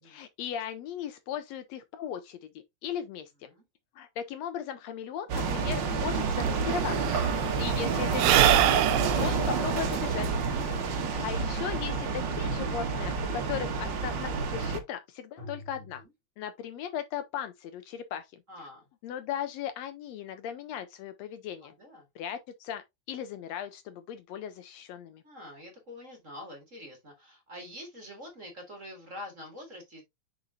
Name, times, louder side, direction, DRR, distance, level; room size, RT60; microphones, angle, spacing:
voice 1, 0.0-2.5 2.8-3.5 3.9-7.2 7.6-8.8 9.2-10.3 10.6-16.0 16.4-18.4 19.0-21.7 22.1-25.2, left 9 dB, 80° left, 1.7 m, -37 dB
sound 1, 4.0-4.1 5.0-8.6 10.3-11.5 15.4-16.0, left 2 dB, 45° left, 2.2 m, -52 dB
sound 2, 5.3-14.8, right 5 dB, 55° right, 1.3 m, -29 dB
Sigh / Breathing, 6.1-6.2 6.4-11.1, right 12 dB, 80° right, 1.8 m, -26 dB
voice 2, 15.7-16.1 18.5-18.9 21.6-22.1 25.2-30.0, left 1 dB, 30° right, 1.8 m, -46 dB
6.8 x 5.1 x 2.7 m
omnidirectional pair, 3.3 m